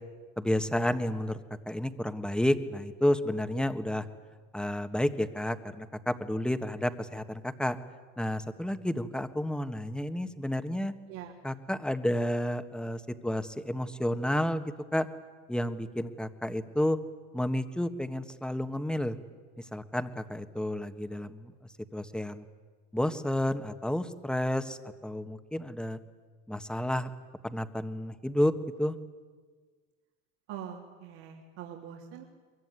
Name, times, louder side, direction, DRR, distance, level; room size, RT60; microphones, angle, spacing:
voice 1, 0.4-1.4 1.7-4.0 4.5-7.8 8.2-10.9 11.4-15.1 15.5-17.0 17.3-19.2 19.6-21.5 21.9-22.4 22.9-26.0 26.5-27.1 27.4-28.5 28.8-29.0, left 1 dB, ahead, 10 dB, 1.4 m, -31 dB
voice 2, 30.5-32.2, right 9 dB, 70° right, -1 dB, 3.6 m, -43 dB
22.5 x 22.5 x 9.6 m, 1.5 s
supercardioid pair, 100°, 36 cm